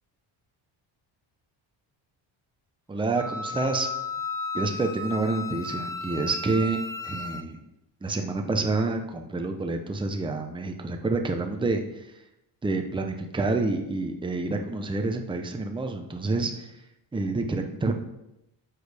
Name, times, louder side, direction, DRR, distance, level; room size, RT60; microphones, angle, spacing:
voice 1, 2.9-3.9 4.5-6.8 7.0-7.6 8.0-12.1 12.6-16.7 17.1-18.0, right 3 dB, 10° right, 4 dB, 0.7 m, -28 dB
Wind instrument woodwind instrument, 3.2-7.4, left 3 dB, 10° left, 0.3 m, -34 dB
10.0 x 6.4 x 3.4 m, 0.88 s
cardioid pair, 125°, 46 cm